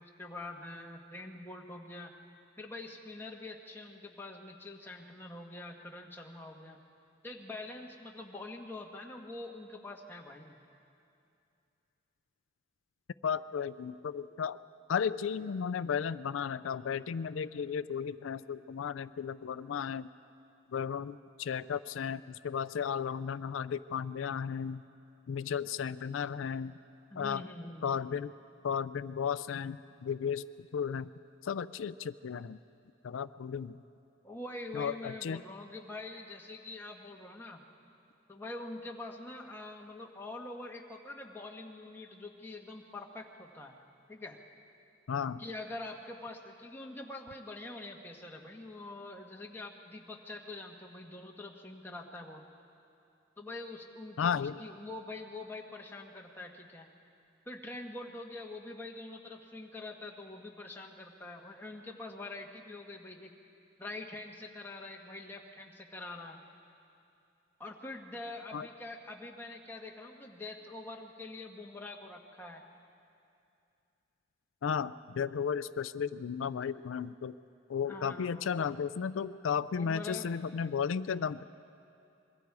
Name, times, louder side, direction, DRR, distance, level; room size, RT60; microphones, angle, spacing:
voice 1, 0.0-2.1 2.6-6.8 7.2-10.6 27.1-28.0 34.2-37.6 38.3-43.7 44.1-44.4 45.4-52.4 53.4-56.9 57.5-63.3 63.8-66.4 67.6-72.6 77.9-78.7 79.7-80.3, left 2 dB, 10° left, 0 dB, 1.4 m, -45 dB
voice 2, 13.2-14.6 14.9-20.1 20.7-24.8 25.3-26.8 27.2-27.4 27.8-28.3 28.6-30.4 30.7-31.1 31.4-32.6 33.0-33.8 34.7-35.4 45.1-45.4 54.2-54.6 68.5-68.7 74.6-77.3 77.7-81.4, left 7 dB, 85° left, 14 dB, 0.4 m, -34 dB
26.0 x 22.5 x 4.8 m, 2.6 s
head